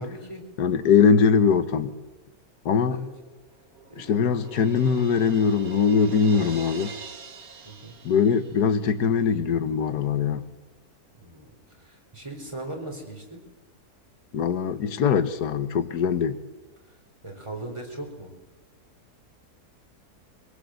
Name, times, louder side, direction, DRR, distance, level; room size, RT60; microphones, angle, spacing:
voice 1, 0.0-0.4 2.9-3.1 3.9-4.1 7.6-8.0 11.2-13.4 16.8-17.0 17.2-18.3, right 2 dB, 15° right, 4.3 m, -39 dB
voice 2, 0.6-1.9 2.7-3.0 4.0-6.9 8.0-10.5 14.3-16.4, left 6 dB, 80° left, 1.7 m, -22 dB
Crash cymbal, 3.2-8.9, right 5 dB, 65° right, 2.0 m, -44 dB
24.5 x 18.5 x 7.8 m
omnidirectional pair, 1.7 m